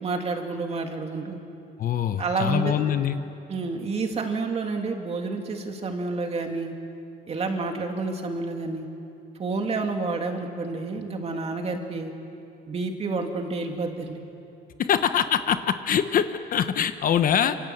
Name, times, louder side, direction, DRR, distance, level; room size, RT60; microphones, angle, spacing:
voice 1, 0.0-1.4 2.2-2.8 3.5-6.7 7.3-8.9 9.4-12.1 12.7-14.2, right 3 dB, 35° right, 3 dB, 2.6 m, -29 dB
voice 2, 1.8-3.2 14.8-17.6, left 9 dB, 50° left, 10 dB, 1.0 m, -24 dB
27.0 x 26.5 x 8.0 m, 2.7 s
cardioid pair, 160°, 19 cm